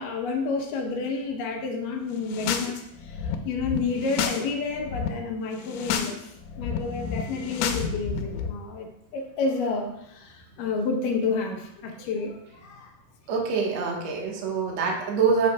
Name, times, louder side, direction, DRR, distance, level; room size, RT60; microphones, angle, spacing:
voice 1, 0.0-12.9, left 4 dB, 70° left, 1 dB, 2.1 m, -30 dB
sound 1, 2.2-2.7 3.0-4.4 4.7-5.1 5.6-6.1 6.4-8.5, left 7 dB, 85° left, 2.8 m, -30 dB
voice 2, 13.3-15.5, right 5 dB, 65° right, -1 dB, 1.7 m, -25 dB
10.5 x 8.3 x 2.3 m, 0.79 s
omnidirectional pair, 4.8 m